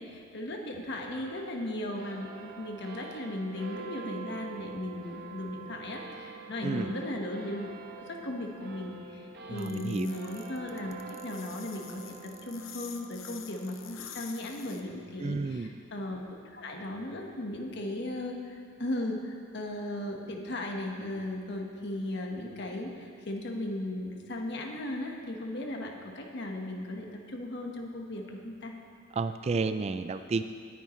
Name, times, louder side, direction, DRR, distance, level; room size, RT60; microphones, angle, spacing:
voice 1, 0.0-7.7 8.0-10.9 11.2-28.7, left 1 dB, 60° left, 1 dB, 1.4 m, -37 dB
sound 1, 1.0-17.7, right 4 dB, 55° right, 1.0 m, -47 dB
voice 2, 6.6-6.9 9.5-10.1 15.2-15.7 29.1-30.4, right 4 dB, 30° right, 10 dB, 0.4 m, -31 dB
sound 2, 9.6-14.8, left 9 dB, 80° left, 0.8 m, -47 dB
19.0 x 9.2 x 3.2 m, 2.5 s
head